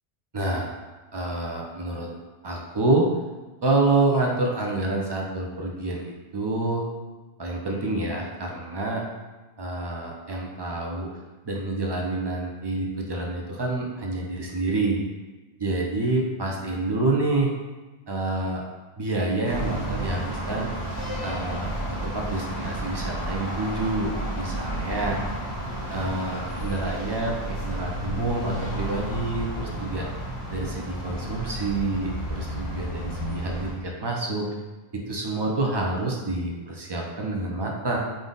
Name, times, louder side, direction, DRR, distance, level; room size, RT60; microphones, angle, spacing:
voice 1, 0.3-0.7 1.1-2.1 2.4-3.1 3.6-6.8 7.4-9.0 9.6-11.1 11.5-15.0 15.6-17.5 18.1-18.6 19.0-20.7 21.2-21.7 22.0-25.2 25.9-30.1 30.5-34.5 34.9-38.0, right 2 dB, 35° right, -1 dB, 0.4 m, -27 dB
sound 1, 19.4-33.7, right 1 dB, 30° left, 1.3 m, -32 dB
3.6 x 2.6 x 3.8 m, 1.2 s
omnidirectional pair, 1.1 m